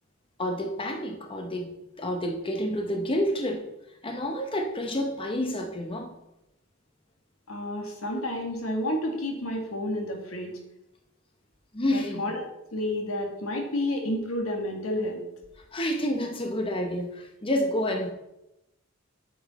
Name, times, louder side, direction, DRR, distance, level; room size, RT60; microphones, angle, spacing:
voice 1, 0.4-3.7 4.0-6.1 11.7-12.4 15.7-18.1, left 1 dB, 25° left, 3 dB, 0.8 m, -29 dB
voice 2, 7.5-10.6 11.9-15.2, left 1 dB, 85° left, 2 dB, 1.8 m, -30 dB
8.0 x 6.3 x 4.1 m, 0.87 s
head